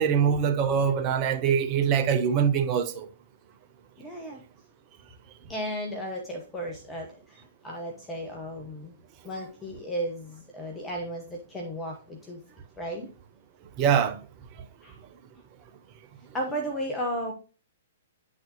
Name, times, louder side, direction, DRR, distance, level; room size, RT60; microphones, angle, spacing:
voice 1, 0.0-3.1 13.8-14.2, right 7 dB, 30° right, 0.8 m, -23 dB
voice 2, 4.0-4.4 5.5-8.9 9.2-12.4 12.8-13.1 14.8-15.0 16.3-17.3, equal, 15° left, 1.3 m, -34 dB
10.0 x 4.0 x 3.1 m
figure-of-eight pair, 110°, 0 cm